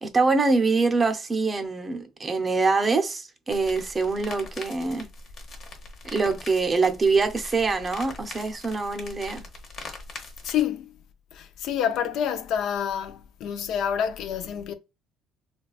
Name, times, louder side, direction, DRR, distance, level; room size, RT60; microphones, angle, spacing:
voice 1, 0.0-5.1 6.1-9.4, right 4 dB, 25° right, 0.5 m, -24 dB
sound 1, 3.5-10.6, left 3 dB, 45° left, 0.9 m, -42 dB
voice 2, 10.4-10.9 11.3-14.7, left 9 dB, 70° left, 0.4 m, -28 dB
3.8 x 2.3 x 2.3 m
cardioid pair, 125°, 0 cm